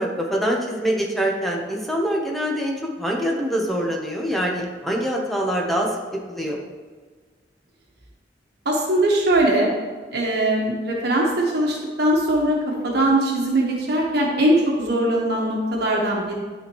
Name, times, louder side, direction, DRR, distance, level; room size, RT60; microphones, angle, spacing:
voice 1, 0.0-6.0 6.3-6.6, equal, ahead, -1 dB, 0.9 m, -24 dB
voice 2, 8.6-9.7 10.1-16.3, right 1 dB, 65° right, -2 dB, 1.3 m, -21 dB
12.0 x 4.3 x 3.1 m, 1.5 s
head